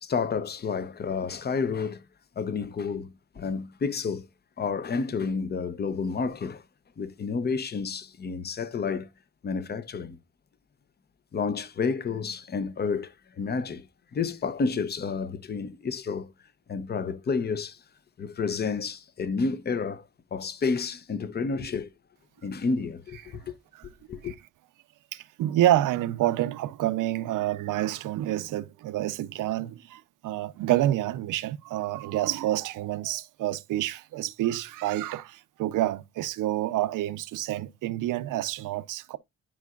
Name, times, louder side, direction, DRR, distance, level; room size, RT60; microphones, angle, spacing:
voice 1, 0.0-2.0 2.4-4.3 4.6-6.6 7.0-9.1 9.4-10.2 11.3-13.9 14.1-16.3 16.7-17.8 18.2-20.0 20.3-21.9 22.4-23.5 23.8-24.3, left 5 dB, 30° left, 0.7 m, -30 dB
voice 2, 25.1-39.2, right 14 dB, 85° right, 0.7 m, -28 dB
11.0 x 4.8 x 2.4 m
cardioid pair, 105°, 31 cm